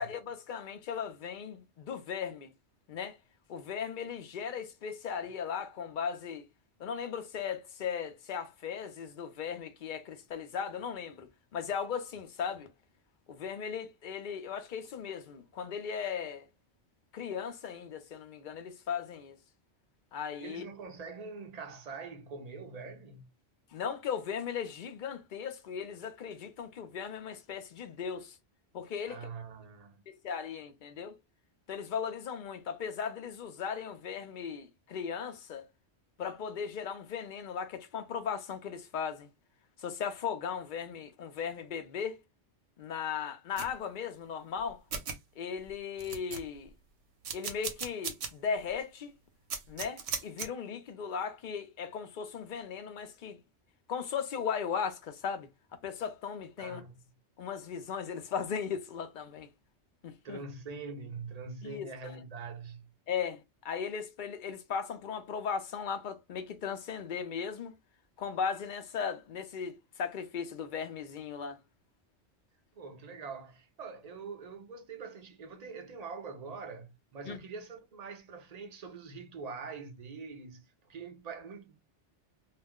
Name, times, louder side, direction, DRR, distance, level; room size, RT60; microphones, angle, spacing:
voice 1, 0.0-2.5 2.9-3.2 3.5-6.4 6.8-12.7 13.3-16.4 17.1-19.4 20.1-20.6 23.7-28.4 28.7-29.3 30.1-31.1 31.7-35.7 36.2-39.3 39.8-42.2 42.8-44.8 45.4-46.7 47.3-49.1 49.7-53.4 53.9-55.5 55.8-56.8 57.4-59.5 60.0-60.4 61.6-62.1 63.1-67.7 68.2-71.6 77.3-77.4, left 7 dB, 50° left, 0.7 m, -37 dB
voice 2, 20.4-23.3 29.1-30.0 56.6-57.0 60.2-62.9 72.8-81.9, right 4 dB, 45° right, 0.6 m, -44 dB
sound 1, 43.6-43.7 44.6-44.7 44.9-45.2 45.6-45.7 46.0-46.7 47.2-48.3 48.7-48.8 49.5-50.5, right 6 dB, 65° right, 0.9 m, -37 dB
2.5 x 2.0 x 3.5 m
omnidirectional pair, 1.2 m